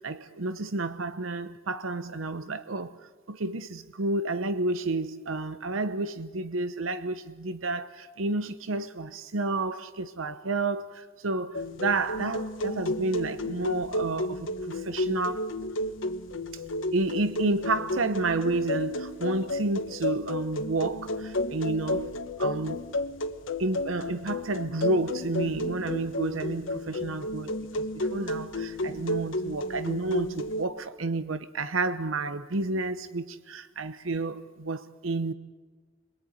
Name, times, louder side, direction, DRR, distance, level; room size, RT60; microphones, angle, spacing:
voice 1, 0.0-2.9 3.3-15.5 16.9-22.1 22.4-22.8 23.6-35.3, right 2 dB, 90° right, 0.9 m, -30 dB
sound 1, 11.5-30.6, left 1 dB, 75° left, 1.3 m, -32 dB
27.0 x 21.5 x 9.7 m
head